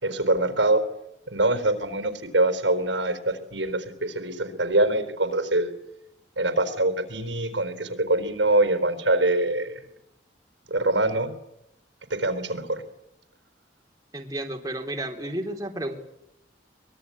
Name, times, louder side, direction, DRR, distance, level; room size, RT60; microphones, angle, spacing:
voice 1, 0.0-0.9 1.3-5.7 6.4-9.9 10.7-11.3 12.1-12.8, right 2 dB, 80° right, 9 dB, 4.1 m, -24 dB
voice 2, 14.1-15.9, right 1 dB, 20° right, 2 dB, 3.4 m, -32 dB
24.0 x 22.0 x 9.7 m, 0.82 s
head